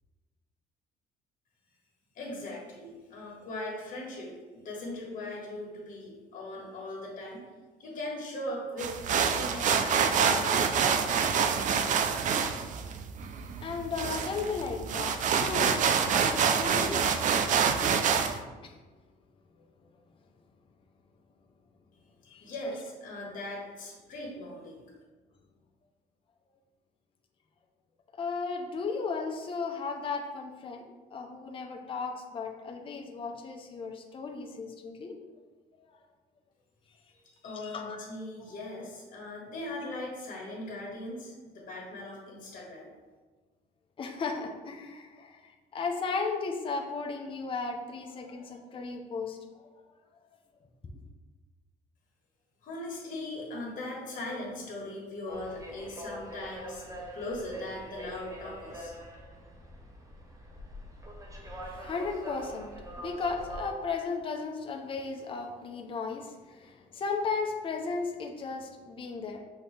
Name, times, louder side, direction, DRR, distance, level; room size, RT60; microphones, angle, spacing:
voice 1, 2.1-7.4 7.8-10.9 11.1-11.5 22.4-24.8 37.2-42.9 52.6-56.8 57.1-58.9, left 1 dB, 50° left, -3 dB, 1.5 m, -39 dB
sound 1, 8.8-18.4, right 6 dB, 50° right, 0.4 m, -27 dB
voice 2, 13.6-17.2 18.6-18.8 19.6-19.7 22.2-22.5 28.1-30.8 31.1-35.1 35.9-36.0 37.4-38.0 38.5-38.6 44.0-49.8 61.6-69.4, left 4 dB, 30° left, 2 dB, 0.6 m, -35 dB
sound 2, 55.3-63.7, equal, 20° right, 0.8 m, -44 dB
5.7 x 2.8 x 3.2 m, 1.3 s
cardioid pair, 110°, 17 cm